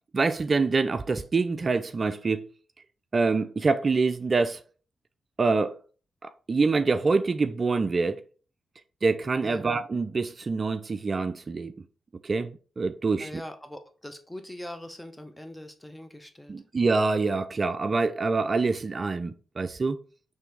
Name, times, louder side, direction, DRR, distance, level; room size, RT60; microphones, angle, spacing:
voice 1, 0.1-2.5 3.1-4.6 5.4-5.8 6.2-8.2 9.0-11.8 12.2-13.3 16.5-20.0, right 4 dB, 45° right, 0.3 m, -25 dB
voice 2, 13.2-16.6, left 1 dB, 10° left, 0.9 m, -42 dB
4.2 x 3.2 x 3.3 m
supercardioid pair, 40°, 0 cm